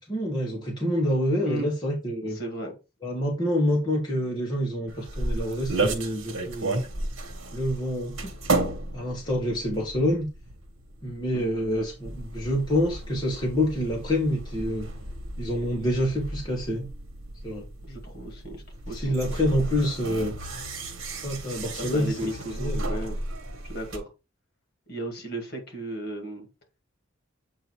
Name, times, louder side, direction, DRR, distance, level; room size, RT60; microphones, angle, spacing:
voice 1, 0.1-2.4 3.0-6.8 7.5-8.3 8.9-10.3 11.0-14.9 15.4-16.9 17.4-17.7 18.9-20.3 21.2-22.3 22.6-22.8, equal, 20° left, 1.3 m, -27 dB
voice 2, 2.3-2.7 11.3-11.5 17.9-19.1 21.8-23.2 23.6-24.1 24.9-26.5, right 1 dB, 50° left, 2.1 m, -35 dB
sound 1, 4.9-24.0, right 2 dB, 80° right, 1.3 m, -33 dB
7.7 x 2.7 x 4.6 m
head